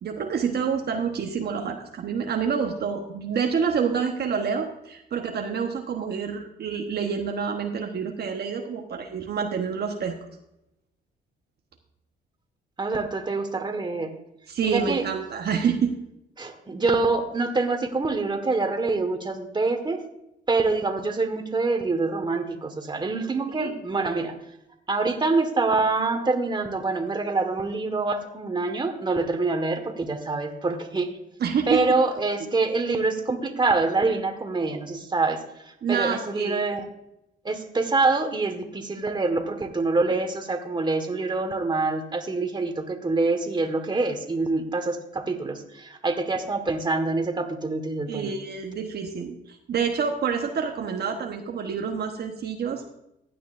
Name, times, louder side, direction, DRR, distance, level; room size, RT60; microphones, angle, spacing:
voice 1, 0.0-10.1 14.5-15.9 23.6-23.7 31.4-31.8 35.8-36.6 48.1-52.9, right 6 dB, 55° right, 3 dB, 1.1 m, -27 dB
voice 2, 12.8-14.1 14.6-15.0 16.4-20.0 20.5-24.3 24.9-31.1 31.7-36.8 37.4-48.3, right 3 dB, 25° right, 6 dB, 1.5 m, -25 dB
15.5 x 9.2 x 2.5 m, 0.84 s
cardioid pair, 90°, 20 cm